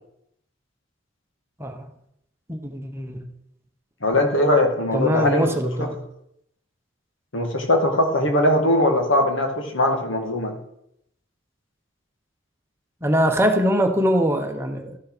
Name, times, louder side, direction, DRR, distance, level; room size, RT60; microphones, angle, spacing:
voice 1, 2.5-3.2 4.9-6.0 13.0-15.0, equal, 15° right, 4 dB, 1.0 m, -22 dB
voice 2, 4.0-5.5 5.8-5.9 7.3-10.6, left 1 dB, 75° left, 3 dB, 2.0 m, -20 dB
13.0 x 6.3 x 6.1 m, 0.76 s
head